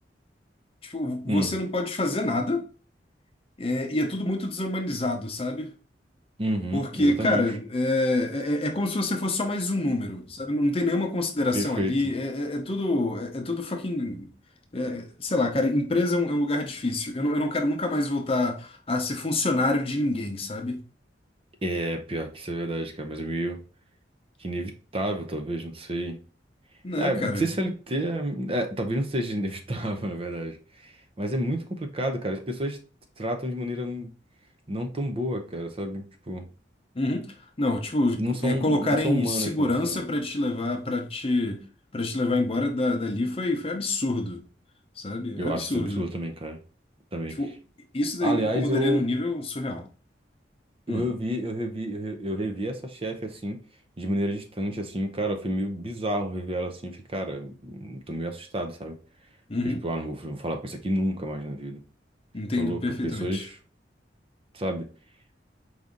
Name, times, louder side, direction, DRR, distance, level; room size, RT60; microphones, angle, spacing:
voice 1, 0.8-2.6 3.6-5.7 6.7-14.3 14.7-20.8 26.8-27.5 37.0-37.3 37.6-41.6 41.9-44.4 45.0-46.0 47.4-47.6 47.9-49.8 50.9-51.1 59.5-59.9 62.3-63.4, left 2 dB, 30° left, 0.7 m, -27 dB
voice 2, 6.4-7.4 11.5-11.9 21.6-23.6 24.4-26.2 27.0-30.9 31.2-32.8 33.2-34.1 34.7-36.5 38.2-40.0 45.4-46.6 47.1-47.3 48.2-49.0 50.9-53.6 54.0-59.0 59.6-61.8 62.6-63.6 64.5-64.9, equal, 30° right, 0.6 m, -30 dB
4.8 x 2.7 x 3.6 m
head